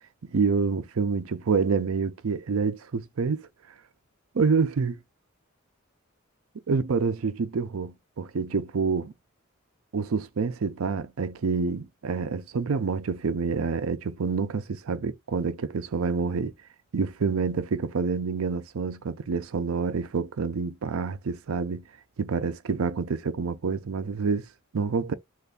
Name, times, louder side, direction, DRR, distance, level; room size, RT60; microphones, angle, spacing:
voice 1, 0.2-3.4 4.3-5.0 6.7-9.1 9.9-16.5 16.9-21.8 22.2-24.5 24.7-25.1, right 5 dB, 80° right, 0.5 m, -27 dB
3.4 x 2.5 x 3.8 m
head